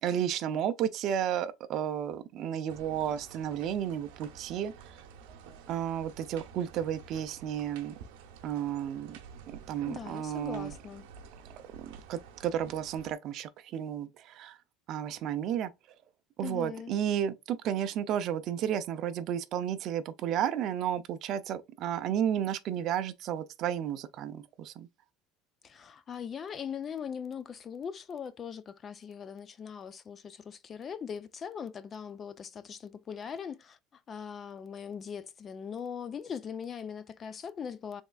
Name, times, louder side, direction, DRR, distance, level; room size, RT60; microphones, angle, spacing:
voice 1, 0.0-5.0 5.7-8.0 8.4-9.2 9.5-10.7 11.5-14.6 14.9-15.7 16.4-24.9, right 9 dB, 50° right, 0.4 m, -32 dB
sound 1, 2.7-13.1, right 6 dB, 90° right, 0.7 m, -51 dB
voice 2, 9.9-11.0 16.4-16.9 25.6-38.0, left 7 dB, 30° left, 0.4 m, -40 dB
3.5 x 3.2 x 2.2 m
cardioid pair, 140°, 0 cm